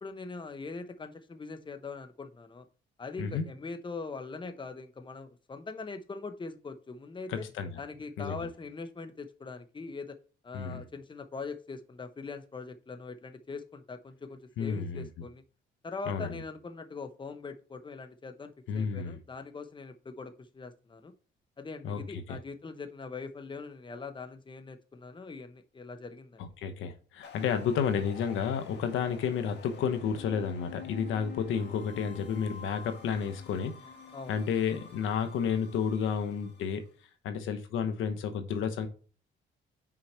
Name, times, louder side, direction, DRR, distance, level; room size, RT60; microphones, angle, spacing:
voice 1, 0.0-2.7 3.0-7.4 7.8-10.2 10.4-15.4 15.8-21.1 21.6-26.4 34.1-34.3, left 4 dB, 25° left, 8 dB, 1.0 m, -42 dB
voice 2, 7.3-7.7 8.2-8.5 10.5-10.8 14.6-15.1 16.1-16.4 18.7-19.2 21.8-22.4 26.4-33.7 34.3-36.8 37.2-38.9, left 7 dB, 80° left, 7 dB, 1.1 m, -31 dB
sound 1, 27.2-36.9, left 6 dB, 60° left, 1.7 m, -48 dB
6.0 x 4.8 x 4.4 m, 0.38 s
cardioid pair, 90°, 20 cm